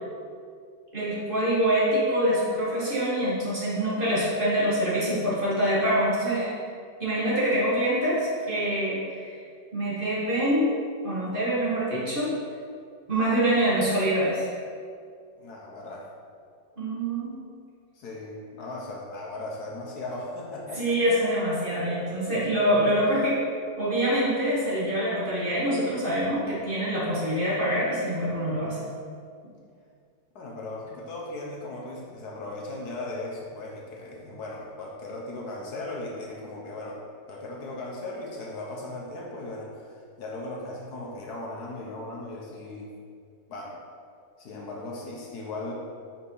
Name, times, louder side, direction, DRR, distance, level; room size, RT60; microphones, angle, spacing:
voice 1, 0.9-6.6 7.0-9.4 9.7-10.7 11.0-12.3 13.1-14.4 16.8-17.3 20.8-23.4 23.8-28.8, right 1 dB, 30° right, -8 dB, 1.4 m, -25 dB
voice 2, 15.4-16.1 17.9-21.0 30.3-37.0 37.3-43.0 43.5-43.8 44.4-45.7, left 2 dB, 65° left, -2 dB, 1.3 m, -37 dB
4.8 x 4.4 x 5.3 m, 2.2 s
omnidirectional pair, 1.9 m